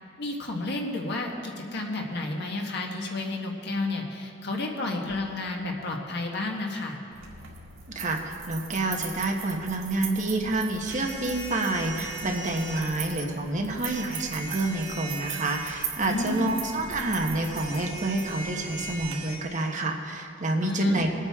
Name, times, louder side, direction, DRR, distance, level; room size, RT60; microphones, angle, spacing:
voice 1, 0.2-7.0 16.0-16.5 20.6-21.0, left 2 dB, 60° left, 0 dB, 1.5 m, -31 dB
sound 1, 7.1-19.1, right 6 dB, 85° right, 2.0 m, -41 dB
voice 2, 7.9-21.1, right 2 dB, 40° right, 2 dB, 1.2 m, -28 dB
sound 2, 10.9-12.8 13.8-19.4, right 3 dB, 70° right, 2.6 m, -39 dB
21.0 x 8.9 x 3.6 m, 2.5 s
head